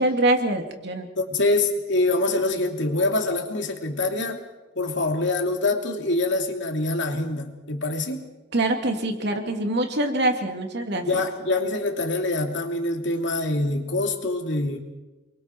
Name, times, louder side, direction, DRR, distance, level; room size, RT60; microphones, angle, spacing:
voice 1, 0.0-1.1 8.5-11.2, right 1 dB, 60° right, 4 dB, 2.7 m, -24 dB
voice 2, 1.2-4.4 4.7-8.2 11.0-14.8, left 2 dB, 65° left, 3 dB, 2.8 m, -25 dB
30.0 x 23.0 x 4.6 m, 1.1 s
head